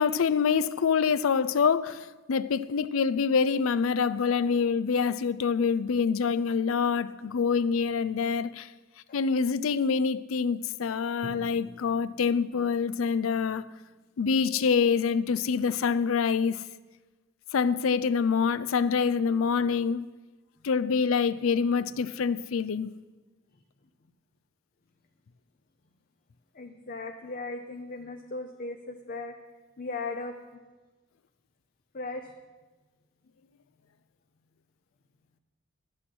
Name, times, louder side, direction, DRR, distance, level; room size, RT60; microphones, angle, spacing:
voice 1, 0.0-8.7 9.1-13.7 14.2-16.6 17.5-20.1 20.6-22.9, left 5 dB, 75° left, 0.5 m, -26 dB
Drum, 11.2-15.0, equal, 75° right, 1.2 m, -50 dB
voice 2, 26.5-29.4 29.8-30.4 31.9-32.3, left 3 dB, 45° left, 0.7 m, -37 dB
11.5 x 8.8 x 6.2 m
head